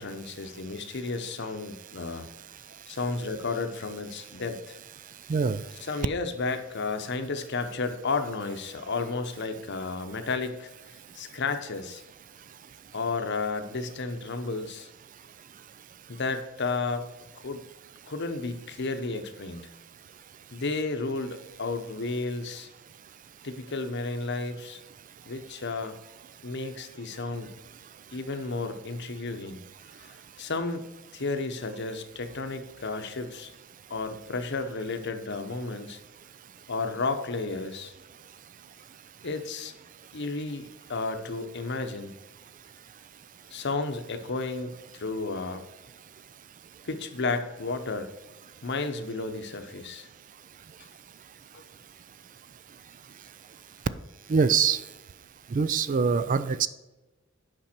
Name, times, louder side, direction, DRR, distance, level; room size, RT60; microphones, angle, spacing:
voice 1, 0.0-2.3 2.9-4.8 5.9-10.7 11.1-12.0 12.9-14.9 16.1-17.0 17.4-17.6 18.1-19.6 20.5-22.7 23.4-24.8 25.3-26.0 26.4-27.5 28.1-29.6 30.4-30.8 31.1-33.5 33.9-36.0 36.7-37.9 39.2-39.7 40.1-42.1 43.5-45.6 46.8-48.1 48.6-50.1 51.5-51.6, left 3 dB, 55° left, 8 dB, 0.9 m, -32 dB
voice 2, 5.3-5.6 54.3-54.8 55.5-56.7, right 5 dB, 40° right, 15 dB, 0.4 m, -24 dB
8.7 x 5.3 x 4.4 m, 1.1 s
head